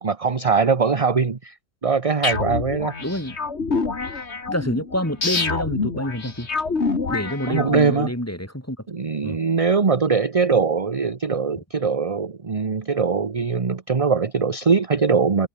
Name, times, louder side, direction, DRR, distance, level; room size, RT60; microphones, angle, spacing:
voice 1, 0.0-1.5 1.8-2.9 7.5-8.1 8.9-15.5, right 5 dB, 30° right, 1.0 m, -21 dB
sound 1, 2.2-8.0, left 4 dB, 70° left, 2.5 m, -27 dB
voice 2, 3.0-3.3 4.5-6.5 7.1-8.8 9.2-9.4, equal, 10° left, 5.0 m, -27 dB
omnidirectional pair, 1.2 m